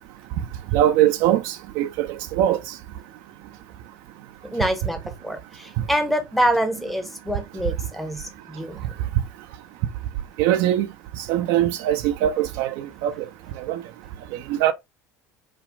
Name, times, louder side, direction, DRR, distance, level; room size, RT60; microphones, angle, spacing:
voice 1, 0.7-2.6 10.4-10.9 11.2-13.1 13.7-13.8 14.5-14.7, right 12 dB, 50° right, 0.4 m, -21 dB
voice 2, 4.5-8.8, equal, ahead, 0.7 m, -25 dB
5.1 x 2.4 x 2.5 m
figure-of-eight pair, 70°, 9 cm